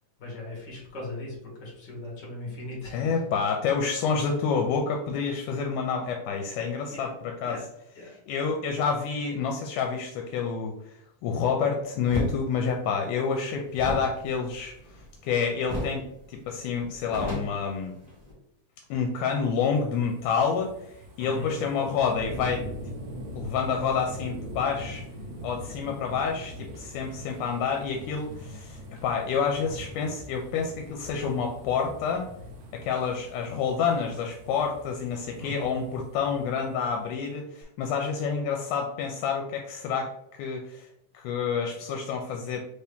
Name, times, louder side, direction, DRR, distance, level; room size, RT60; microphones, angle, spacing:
voice 1, 0.2-3.4 6.9-7.1 7.4-7.7 7.9-8.2 21.2-21.6 35.4-35.8, left 2 dB, 45° left, -3 dB, 1.5 m, -38 dB
voice 2, 2.9-7.6 8.3-10.9 11.2-18.0 18.9-22.6 23.3-25.0 25.4-32.3 32.7-40.9 41.1-42.6, left 6 dB, 85° left, 2 dB, 2.0 m, -28 dB
sound 1, 12.1-12.3 13.7-15.3 15.7-16.0 16.3-16.4 16.8-18.3, left 1 dB, 25° right, 0.8 m, -33 dB
sound 2, 19.1-37.2 37.6-37.7, equal, 70° right, 2.0 m, -43 dB
4.8 x 2.8 x 3.4 m, 0.79 s
omnidirectional pair, 3.6 m